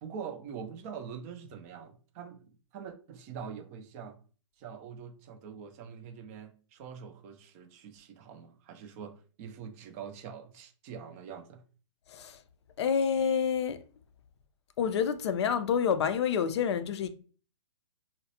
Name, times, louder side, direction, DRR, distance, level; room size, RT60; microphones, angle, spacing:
voice 1, 0.0-4.2 4.6-11.6, right 7 dB, 25° right, 0.4 m, -44 dB
voice 2, 12.8-13.8 14.8-17.1, left 7 dB, 55° left, 0.4 m, -28 dB
2.3 x 2.0 x 2.7 m
hypercardioid pair, 130°, 17 cm